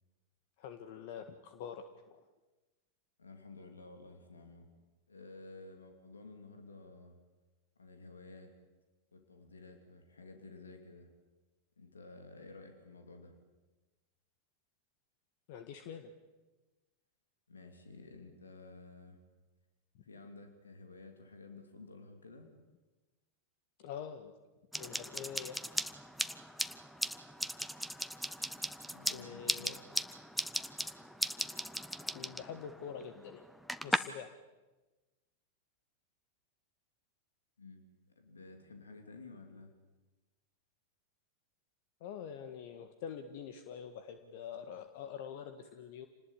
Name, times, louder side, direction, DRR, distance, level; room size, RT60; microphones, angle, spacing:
voice 1, 0.6-2.2 15.5-16.1 23.8-24.3 24.8-25.6 29.1-29.8 32.1-33.4 33.8-34.3 42.0-46.1, left 8 dB, 60° left, 8 dB, 1.7 m, -45 dB
voice 2, 3.2-4.7 5.1-7.2 7.8-8.5 9.1-11.1 11.8-13.3 17.5-19.2 20.0-22.5 28.9-29.8 37.6-37.8 38.1-39.7, left 3 dB, 90° left, 5 dB, 2.9 m, -52 dB
sound 1, 24.7-34.0, equal, ahead, 1.1 m, -38 dB
28.0 x 20.0 x 8.8 m, 1.2 s
hypercardioid pair, 95°, 0 cm